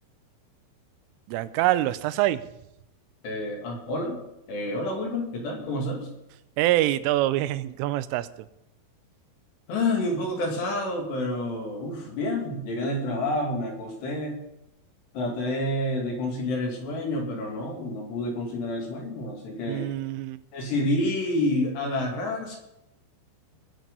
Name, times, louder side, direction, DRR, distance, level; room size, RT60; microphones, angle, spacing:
voice 1, 1.3-2.4 6.6-8.3 19.7-20.4, right 15 dB, 90° right, 14 dB, 3.2 m, -25 dB
voice 2, 3.2-4.2 4.5-6.1 9.7-14.4 15.1-19.9 20.5-22.6, left 1 dB, 65° left, 0 dB, 4.4 m, -29 dB
20.0 x 7.5 x 5.4 m, 0.85 s
omnidirectional pair, 5.6 m